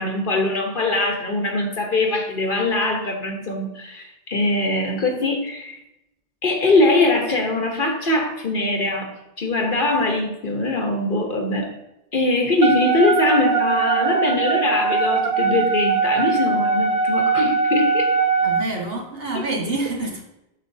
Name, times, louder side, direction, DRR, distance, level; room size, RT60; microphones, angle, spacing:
voice 1, 0.0-5.8 6.4-9.1 9.4-11.7 12.1-18.1, left 2 dB, 55° left, 3 dB, 1.2 m, -22 dB
Wind instrument woodwind instrument, 12.6-18.7, right 5 dB, 85° right, 1.1 m, -21 dB
voice 2, 18.4-20.2, right 2 dB, 65° right, -1 dB, 1.9 m, -27 dB
8.5 x 7.4 x 2.7 m, 0.90 s
omnidirectional pair, 1.0 m